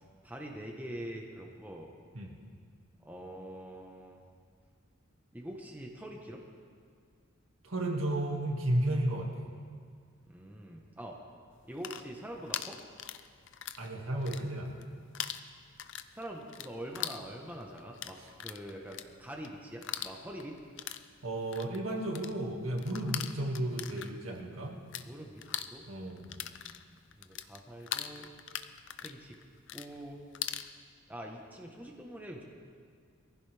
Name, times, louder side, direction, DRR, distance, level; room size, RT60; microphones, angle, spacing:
voice 1, 0.2-1.9 3.0-4.2 5.3-6.4 10.3-11.2 11.7-12.8 16.1-20.6 23.0-23.2 25.1-25.9 27.2-28.3 29.0-29.3 29.7-30.2 31.1-32.4, right 1 dB, 10° right, 0 dB, 1.2 m, -44 dB
voice 2, 7.6-9.5 13.8-14.8 21.2-24.8 25.9-26.4, right 1 dB, 75° right, 0 dB, 2.1 m, -33 dB
sound 1, 11.6-13.9 14.1-14.9 15.1-25.1 25.3-30.7, left 10 dB, 60° left, 0.6 m, -41 dB
22.5 x 15.5 x 3.5 m, 2.1 s
head